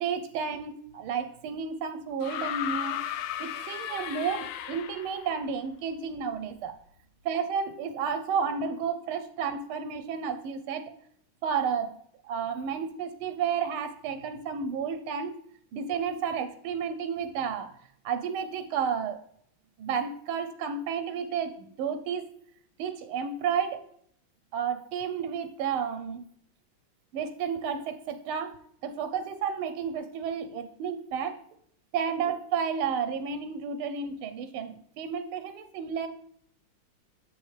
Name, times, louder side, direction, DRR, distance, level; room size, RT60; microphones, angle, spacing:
voice 1, 0.0-3.0 3.4-6.8 7.2-10.9 11.4-11.9 12.2-15.4 15.7-17.7 18.0-19.2 19.8-22.3 22.8-23.8 24.5-26.2 27.1-28.6 28.8-31.4 31.9-36.1, right 6 dB, 85° right, 9 dB, 1.5 m, -31 dB
sound 1, 2.2-5.3 6.5-6.6, left 11 dB, 75° left, 1.0 m, -35 dB
7.5 x 6.4 x 3.2 m, 0.64 s
omnidirectional pair, 2.3 m